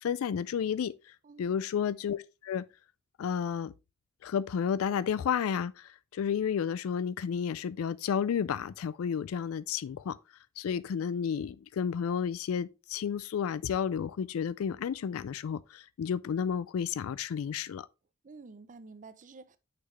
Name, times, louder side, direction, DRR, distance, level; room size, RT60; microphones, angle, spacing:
voice 1, 0.0-2.7 3.2-3.7 4.2-10.2 10.6-17.9, left 7 dB, 75° left, 0.3 m, -32 dB
voice 2, 1.2-1.6 18.2-19.6, right 4 dB, 40° right, 0.5 m, -50 dB
6.3 x 5.9 x 3.1 m
head